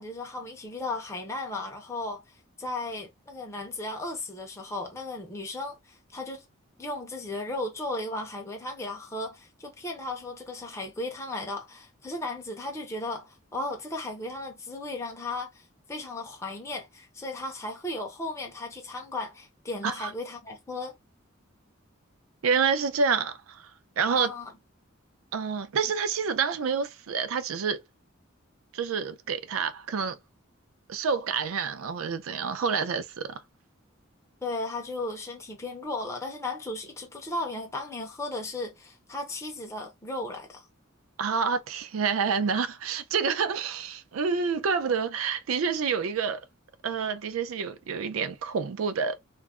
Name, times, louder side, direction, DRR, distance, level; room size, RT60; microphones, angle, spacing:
voice 1, 0.0-2.2 2.6-6.4 6.8-21.0 24.1-24.5 34.4-40.7, left 2 dB, 15° left, 0.5 m, -35 dB
voice 2, 22.4-23.7 24.0-24.3 25.3-27.8 28.7-30.2 30.9-33.4 41.2-46.4 46.8-49.2, right 5 dB, 85° right, 0.4 m, -28 dB
2.3 x 2.0 x 3.5 m
head